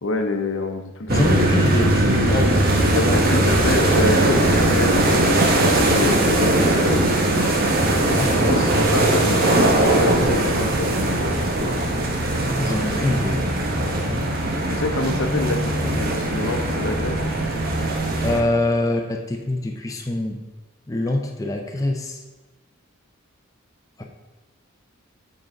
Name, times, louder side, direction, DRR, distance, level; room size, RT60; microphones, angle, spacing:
voice 1, 0.0-1.6 2.9-5.4 5.9-7.5 8.0-11.8 14.7-17.2, left 2 dB, 70° left, 5 dB, 0.7 m, -27 dB
voice 2, 1.1-3.6 8.1-8.7 12.6-13.4 13.8-14.3 18.2-20.4 20.9-22.2 24.0-24.1, left 2 dB, 15° left, 2 dB, 0.5 m, -25 dB
sound 1, 1.1-18.4, right 1 dB, 45° right, 0.9 m, -20 dB
7.3 x 3.9 x 5.2 m, 1.1 s
head